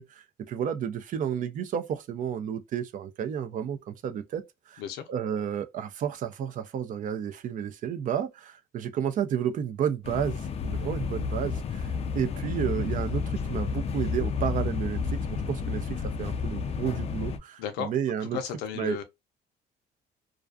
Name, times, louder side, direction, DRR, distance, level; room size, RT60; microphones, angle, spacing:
voice 1, 0.0-4.8 5.1-18.4 18.7-19.0, right 8 dB, 50° right, 0.4 m, -32 dB
sound 1, 10.0-17.4, left 5 dB, 35° left, 0.4 m, -31 dB
voice 2, 17.6-17.9 18.3-19.0, left 8 dB, 90° left, 0.5 m, -33 dB
2.3 x 2.3 x 2.3 m
cardioid pair, 110°, 17 cm